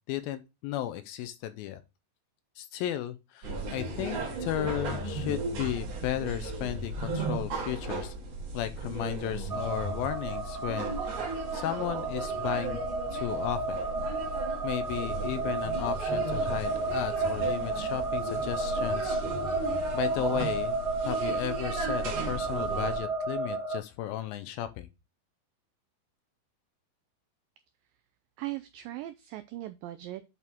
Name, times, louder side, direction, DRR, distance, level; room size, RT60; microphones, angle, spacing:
voice 1, 0.1-1.8 2.6-8.1 8.5-12.8 13.1-13.8 14.6-19.2 19.9-20.8 21.1-24.9, left 12 dB, 80° left, 2.2 m, -34 dB
sound 1, 3.4-23.0, right 3 dB, 50° right, 2.4 m, -36 dB
sound 2, 9.5-23.8, right 3 dB, 30° right, 0.4 m, -32 dB
voice 2, 28.4-30.3, right 16 dB, 90° right, 1.9 m, -39 dB
8.3 x 4.6 x 3.5 m
omnidirectional pair, 4.5 m